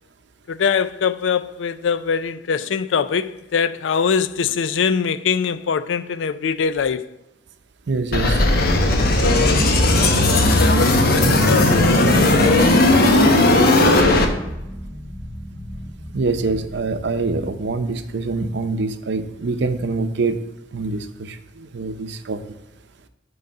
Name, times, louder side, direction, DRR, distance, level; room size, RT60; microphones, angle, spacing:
voice 1, 0.5-7.1 9.2-12.1, left 6 dB, 90° left, 0.4 m, -23 dB
sound 1, 7.9-17.7, equal, 40° left, 3.1 m, -34 dB
voice 2, 7.9-8.4 16.1-20.4 20.7-22.4, right 3 dB, 70° right, 0.6 m, -25 dB
sound 2, 8.1-14.3, left 2 dB, 55° left, 1.0 m, -16 dB
7.8 x 3.9 x 6.7 m
head